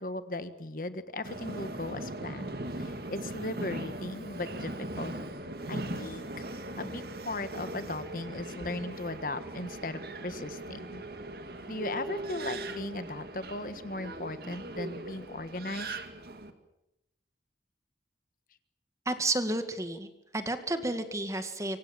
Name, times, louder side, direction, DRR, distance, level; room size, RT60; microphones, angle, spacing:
voice 1, 0.0-5.1 5.7-11.0 11.7-16.0, left 2 dB, 50° left, 11 dB, 1.5 m, -38 dB
Subway metro underground, 1.2-16.5, right 1 dB, 60° right, 2.2 m, -39 dB
voice 2, 19.1-20.1 20.3-21.8, right 2 dB, 15° right, 9 dB, 2.0 m, -31 dB
25.5 x 24.0 x 7.4 m, 0.89 s
head